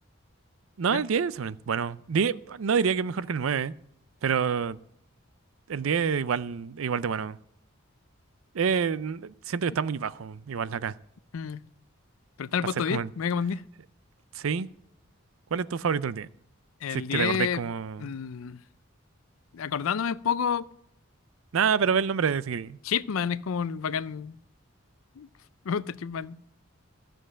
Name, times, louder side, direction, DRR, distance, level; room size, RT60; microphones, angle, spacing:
voice 1, 0.8-3.7 4.2-4.8 5.7-7.4 8.5-10.9 12.9-13.1 14.3-14.7 15.5-16.3 16.9-18.1 21.5-22.8, right 6 dB, 75° right, 0.5 m, -27 dB
voice 2, 11.3-11.6 12.4-13.6 16.8-17.6 18.0-18.6 19.5-20.6 22.8-24.4 25.2-25.3 25.6-26.4, left 7 dB, 75° left, 0.4 m, -29 dB
13.5 x 7.7 x 6.3 m
head